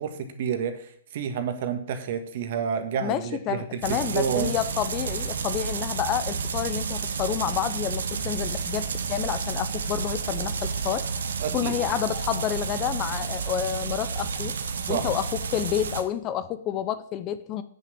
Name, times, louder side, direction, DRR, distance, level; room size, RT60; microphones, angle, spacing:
voice 1, 0.0-4.5 11.4-11.8 14.8-15.1, right 7 dB, 50° right, 8 dB, 1.6 m, -30 dB
voice 2, 3.0-11.0 11.5-14.5 14.9-17.6, left 10 dB, 30° left, 13 dB, 0.6 m, -29 dB
sound 1, 3.8-16.0, right 5 dB, 75° right, 1.1 m, -31 dB
7.6 x 6.6 x 7.0 m, 0.62 s
hypercardioid pair, 140°, 0 cm